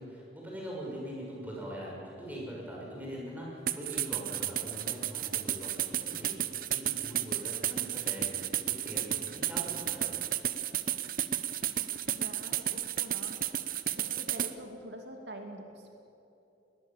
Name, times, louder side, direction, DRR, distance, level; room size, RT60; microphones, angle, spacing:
voice 1, 0.0-10.1, equal, 10° right, -4 dB, 6.4 m, -42 dB
sound 1, 3.7-14.5, right 11 dB, 50° right, 0.7 m, -32 dB
voice 2, 12.0-13.4 14.0-15.9, right 1 dB, 90° right, 3 dB, 2.4 m, -45 dB
20.5 x 19.5 x 7.3 m, 2.9 s
head